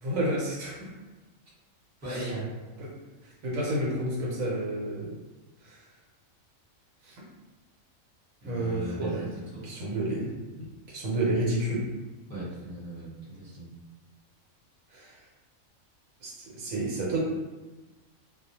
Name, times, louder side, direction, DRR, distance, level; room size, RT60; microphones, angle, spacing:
voice 1, 0.0-0.9 2.1-2.3 2.8-2.9 3.4-5.1 5.6-5.8 7.0-7.2 8.4-9.2 9.6-11.8 14.9-15.2 16.2-17.2, right 1 dB, 75° right, -4 dB, 1.1 m, -30 dB
voice 2, 2.0-2.5 8.4-9.7 12.3-13.7, right 1 dB, 15° right, -9 dB, 0.9 m, -38 dB
2.3 x 2.1 x 2.7 m, 1.2 s
omnidirectional pair, 1.4 m